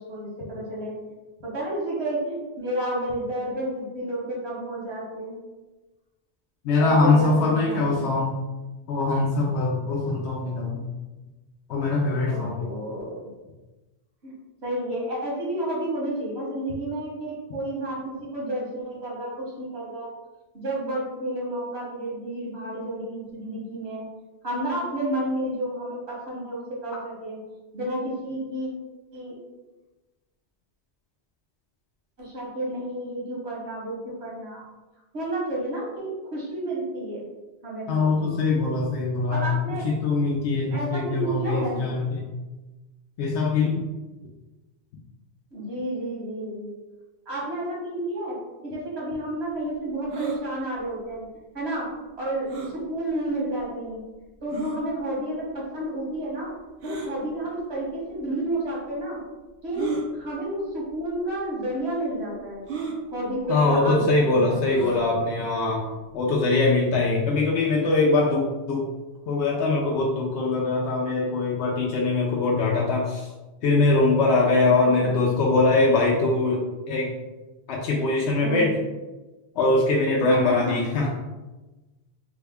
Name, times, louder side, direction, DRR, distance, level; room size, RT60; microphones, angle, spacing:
voice 1, 0.1-0.9 1.4-5.3 6.8-8.1 12.2-13.2 14.2-14.3 14.6-20.1 20.5-24.1 24.4-27.4 27.7-28.7 29.1-29.3 32.2-34.6 35.1-37.2 37.6-38.1 39.3-39.9 40.7-41.8 45.5-46.7 47.3-51.2 51.5-51.9 52.2-52.5 52.7-54.0 54.4-56.5 56.8-59.2 59.6-62.6 63.1-64.9 74.8-75.2 78.4-78.6 80.2-80.8, right 1 dB, 80° right, -5 dB, 1.5 m, -31 dB
voice 2, 6.6-8.3 8.9-10.8 11.7-12.7 37.9-39.6 39.8-42.2 43.2-43.8 63.5-65.9 66.1-68.9 69.3-73.3 73.6-77.2 77.7-78.8 79.6-81.1, left 3 dB, 85° left, -3 dB, 0.9 m, -22 dB
sound 1, 50.1-50.4 52.5-52.8 53.6-53.7 54.5-54.8 56.8-57.1 58.2-58.3 59.7-60.0 61.0-61.1 61.4-61.5 62.7-63.0 64.7-65.0, right 4 dB, 65° right, 0.9 m, -32 dB
3.4 x 2.1 x 3.4 m, 1.1 s
omnidirectional pair, 1.1 m